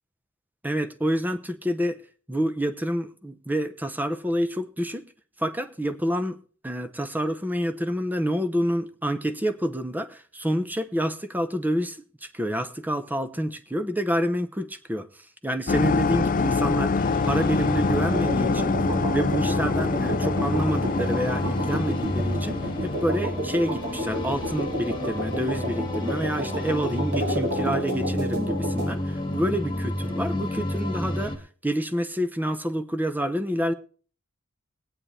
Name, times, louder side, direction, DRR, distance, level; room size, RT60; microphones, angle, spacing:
voice 1, 0.6-2.0 2.3-5.1 5.4-15.1 15.4-18.8 19.1-33.7, equal, 10° right, 0.8 m, -28 dB
sound 1, 15.7-23.3, left 4 dB, 40° left, 0.5 m, -26 dB
sound 2, 17.0-31.4, left 1 dB, 25° left, 1.9 m, -30 dB
sound 3, 18.1-28.9, equal, 55° right, 4.3 m, -31 dB
22.0 x 8.9 x 3.3 m
head